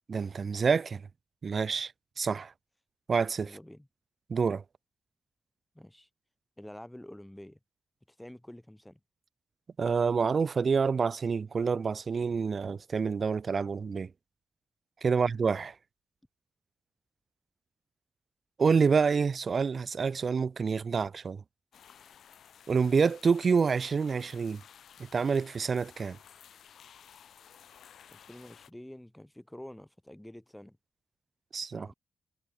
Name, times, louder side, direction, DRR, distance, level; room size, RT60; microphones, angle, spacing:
voice 1, 0.1-1.0 1.4-1.9 2.2-2.5 3.1-3.6 4.3-4.6 9.8-14.1 15.0-15.8 18.6-21.4 22.7-24.6 25.0-26.2 31.5-31.9, right 5 dB, 45° right, 0.5 m, -27 dB
voice 2, 3.4-3.9 5.7-6.1 6.6-7.6 8.1-9.0 15.1-15.2 28.1-30.8 31.7-31.9, left 1 dB, 5° left, 2.0 m, -48 dB
sound 1, 21.7-28.7, left 8 dB, 85° left, 3.3 m, -55 dB
wide cardioid pair, 130°, 0 cm